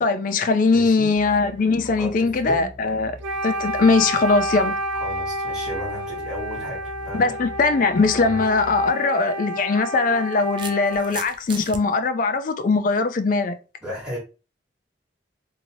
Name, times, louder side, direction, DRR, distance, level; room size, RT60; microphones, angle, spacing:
voice 1, 0.0-3.1 3.4-4.7 7.1-13.5, left 4 dB, 45° left, 0.4 m, -20 dB
voice 2, 0.7-1.1 2.0-2.7 4.9-7.3 8.2-8.4 13.8-14.2, equal, 5° right, 1.5 m, -34 dB
sound 1, 1.1-8.9, left 1 dB, 15° left, 0.7 m, -43 dB
Wind instrument woodwind instrument, 3.2-11.2, equal, 90° right, 0.5 m, -30 dB
sound 2, 8.6-8.8 9.9-11.8, right 6 dB, 25° right, 0.3 m, -37 dB
2.9 x 2.7 x 2.7 m
head